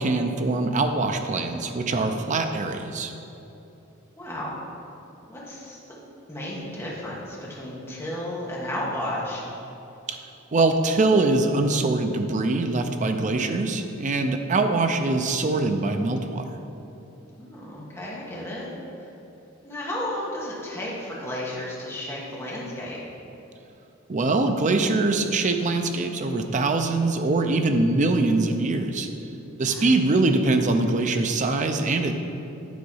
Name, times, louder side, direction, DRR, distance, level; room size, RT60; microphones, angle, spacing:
voice 1, 0.0-3.1 10.1-10.2 10.5-16.4 24.1-29.1 29.6-32.1, right 2 dB, 35° right, 6 dB, 0.5 m, -23 dB
voice 2, 4.1-4.6 5.3-5.8 6.3-9.4 17.4-18.7 19.0-19.1 19.6-23.0 29.7-29.9, left 1 dB, 10° left, -6 dB, 1.5 m, -33 dB
9.5 x 4.0 x 5.5 m, 3.0 s
head